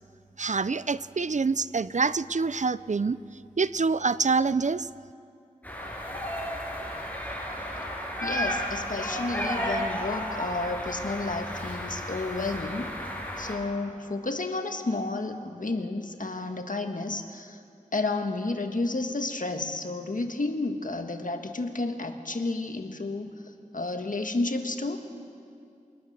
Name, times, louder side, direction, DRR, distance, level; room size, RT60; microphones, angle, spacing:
voice 1, 0.4-3.2 3.6-4.9, right 4 dB, 65° right, 17 dB, 0.5 m, -26 dB
sound 1, 5.6-13.6, equal, 10° left, 6.5 m, -33 dB
voice 2, 8.2-12.9 13.4-17.6 17.9-23.3 23.7-25.0, left 2 dB, 80° left, 6 dB, 1.6 m, -31 dB
28.5 x 20.0 x 6.7 m, 2.4 s
wide cardioid pair, 50°, 14 cm